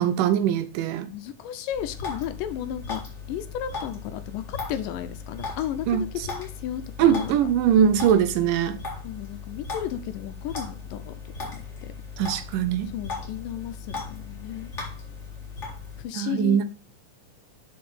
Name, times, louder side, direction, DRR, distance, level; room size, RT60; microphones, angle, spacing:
voice 1, 0.0-1.1 5.9-6.0 7.0-8.8 12.2-12.9 16.2-16.6, right 9 dB, 80° right, 2.2 m, -21 dB
voice 2, 1.1-3.0 3.3-7.4 9.0-11.1 11.5-11.9 12.9-14.7 16.0-16.6, left 10 dB, 80° left, 2.2 m, -34 dB
sound 1, 1.7-16.0, left 4 dB, 30° left, 1.6 m, -37 dB
6.2 x 4.8 x 5.4 m
omnidirectional pair, 4.1 m